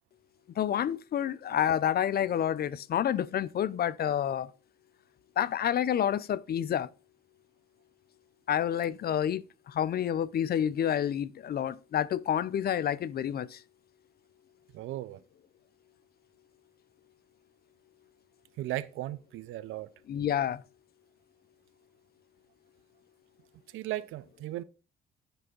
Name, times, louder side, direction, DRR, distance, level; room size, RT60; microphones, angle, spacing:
voice 1, 0.6-4.5 5.4-6.9 8.5-13.6 20.1-20.6, left 10 dB, 50° left, 0.5 m, -29 dB
voice 2, 14.7-15.2 18.6-19.9 23.7-24.6, right 15 dB, 85° right, 0.5 m, -36 dB
10.0 x 3.4 x 5.3 m
cardioid pair, 90°, 20 cm